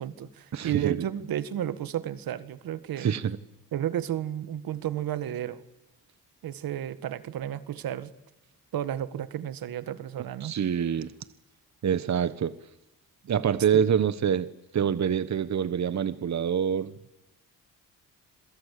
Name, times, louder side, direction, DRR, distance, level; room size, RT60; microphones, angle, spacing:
voice 1, 0.0-3.1 3.7-5.6 6.4-8.1 8.7-10.6 13.7-13.9, right 11 dB, 80° right, 14 dB, 1.7 m, -32 dB
voice 2, 0.5-1.0 3.0-3.4 10.4-11.1 11.8-12.5 13.3-16.9, right 8 dB, 50° right, 15 dB, 1.2 m, -26 dB
27.5 x 22.0 x 8.4 m, 0.91 s
cardioid pair, 85°, 35 cm